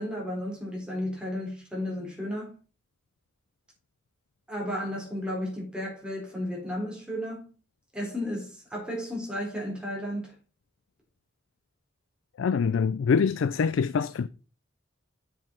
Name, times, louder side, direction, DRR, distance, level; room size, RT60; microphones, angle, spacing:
voice 1, 0.0-2.5 4.5-7.5 7.9-10.3, left 1 dB, 5° right, 3.9 m, -33 dB
voice 2, 12.4-14.3, left 5 dB, 80° left, 0.4 m, -25 dB
7.6 x 7.4 x 3.8 m
head